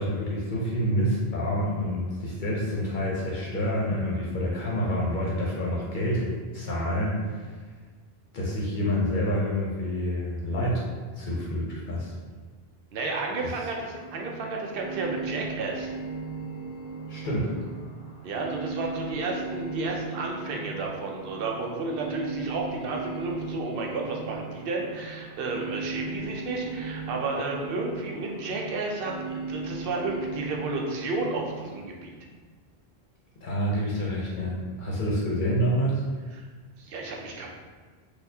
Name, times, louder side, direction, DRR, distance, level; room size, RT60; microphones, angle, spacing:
voice 1, 0.0-7.5 8.3-10.8 11.2-12.1 17.1-17.5 33.4-36.0, equal, 55° left, -5 dB, 0.7 m, -28 dB
voice 2, 12.9-15.9 18.2-32.1 36.3-36.5 36.8-37.5, right 3 dB, 65° right, 0 dB, 0.7 m, -32 dB
sound 1, 13.9-31.8, right 4 dB, 40° right, 0.4 m, -37 dB
4.1 x 2.3 x 2.7 m, 1.5 s
omnidirectional pair, 1.1 m